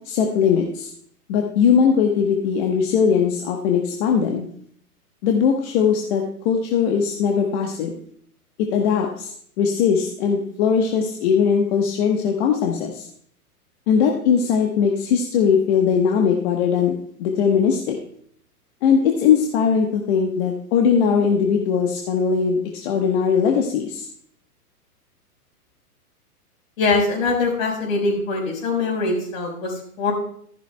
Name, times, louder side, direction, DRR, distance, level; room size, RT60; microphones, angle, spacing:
voice 1, 0.0-0.9 1.3-4.5 5.2-7.9 8.7-13.1 13.9-16.9 17.2-18.0 18.8-24.1, left 6 dB, 45° left, 2 dB, 1.3 m, -20 dB
voice 2, 26.8-30.1, left 3 dB, 60° left, 1 dB, 4.7 m, -22 dB
14.0 x 11.0 x 2.3 m, 0.63 s
hypercardioid pair, 120°, 46 cm